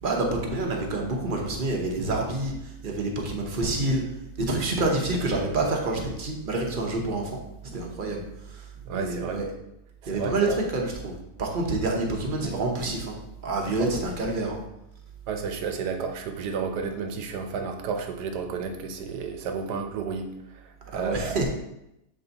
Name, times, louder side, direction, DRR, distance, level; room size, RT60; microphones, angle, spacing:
voice 1, 0.0-4.0 4.4-7.3 7.7-8.2 8.5-8.6 8.9-9.5 10.1-13.1 13.4-14.6 20.9-21.5, right 2 dB, 40° right, 0 dB, 1.0 m, -27 dB
voice 2, 8.9-9.4 10.0-10.6 13.8-13.9 15.3-21.5, right 5 dB, 90° right, 6 dB, 1.3 m, -32 dB
7.0 x 3.5 x 4.0 m, 0.85 s
omnidirectional pair, 1.7 m